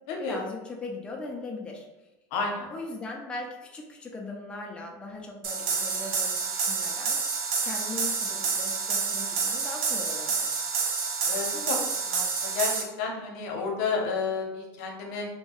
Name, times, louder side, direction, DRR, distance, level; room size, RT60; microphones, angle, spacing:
voice 1, 0.2-1.9 2.7-10.7, left 3 dB, 10° left, 0 dB, 0.3 m, -39 dB
voice 2, 2.3-2.7 11.3-11.8 12.1-12.7 13.0-15.3, left 5 dB, 70° left, 1 dB, 0.6 m, -31 dB
sound 1, 5.4-12.8, right 5 dB, 65° right, 0.5 m, -28 dB
2.7 x 2.2 x 2.9 m, 1.0 s
supercardioid pair, 135°, 9 cm